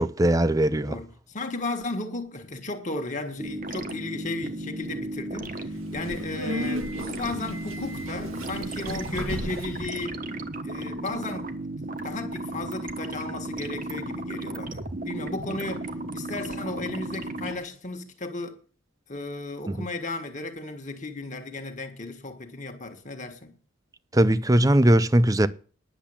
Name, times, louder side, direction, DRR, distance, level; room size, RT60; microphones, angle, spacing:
voice 1, 0.0-1.0 24.1-25.5, right 1 dB, 15° right, 0.5 m, -20 dB
voice 2, 0.9-10.2 10.6-11.5 12.0-18.6 19.1-23.5, left 2 dB, 35° left, 1.5 m, -35 dB
sound 1, 3.4-17.6, right 2 dB, 40° right, 1.2 m, -35 dB
Subway metro underground, 5.6-9.9, equal, 85° right, 1.8 m, -35 dB
10.5 x 7.3 x 8.6 m
head